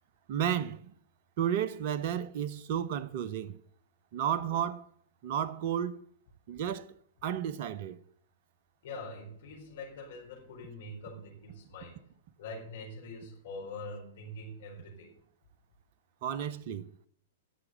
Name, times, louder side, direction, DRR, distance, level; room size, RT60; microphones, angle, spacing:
voice 1, 0.3-0.9 1.4-3.6 4.1-4.9 5.2-6.0 6.5-6.9 7.2-8.0 16.2-16.9, right 9 dB, 45° right, 0.8 m, -32 dB
voice 2, 8.8-12.0 12.4-15.1, left 2 dB, 55° left, 4.3 m, -44 dB
16.5 x 6.0 x 7.9 m
figure-of-eight pair, 105°, 0 cm